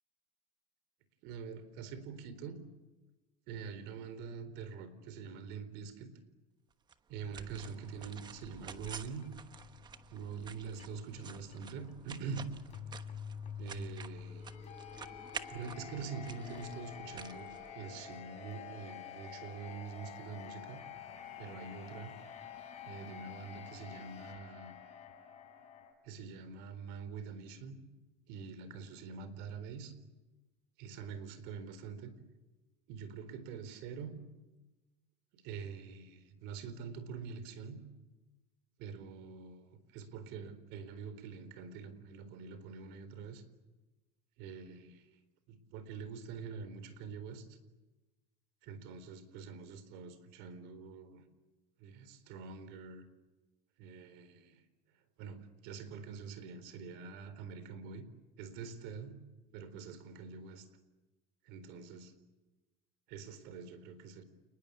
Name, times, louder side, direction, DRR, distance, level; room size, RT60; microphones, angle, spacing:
voice 1, 1.2-2.6 3.5-6.1 7.1-9.3 10.1-12.5 13.6-14.5 15.5-17.5 17.7-20.8 21.4-22.2 22.8-24.8 26.0-27.8 28.3-30.0 30.8-32.2 32.9-34.2 35.3-37.8 38.8-43.4 44.4-45.2 45.5-47.6 48.6-51.2 51.8-53.1 53.8-54.6 54.9-58.1 58.4-59.2 59.5-60.7 61.4-62.1 63.1-64.2, right 5 dB, 60° right, 13 dB, 4.1 m, -45 dB
sound 1, 6.9-18.2, right 6 dB, 20° right, 1.2 m, -50 dB
sound 2, 7.8-25.9, left 7 dB, 35° left, 4.6 m, -49 dB
29.5 x 20.5 x 8.5 m, 1.1 s
cardioid pair, 155°, 20 cm